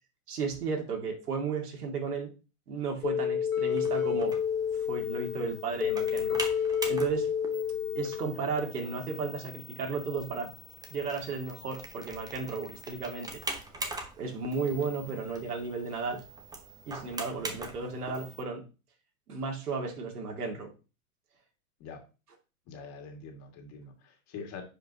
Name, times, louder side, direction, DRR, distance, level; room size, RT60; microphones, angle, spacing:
voice 1, 0.3-2.3 2.7-4.4 4.7-7.3 8.0-10.5 10.9-13.4 14.2-16.3 16.9-18.6 19.3-20.7, right 4 dB, 85° right, 2.2 m, -34 dB
sound 1, 3.0-8.6, left 7 dB, 85° left, 1.3 m, -30 dB
sound 2, 3.7-18.4, right 2 dB, 10° right, 0.9 m, -43 dB
voice 2, 22.7-24.6, left 5 dB, 35° left, 2.0 m, -45 dB
10.0 x 5.1 x 2.8 m
hypercardioid pair, 125°, 45 cm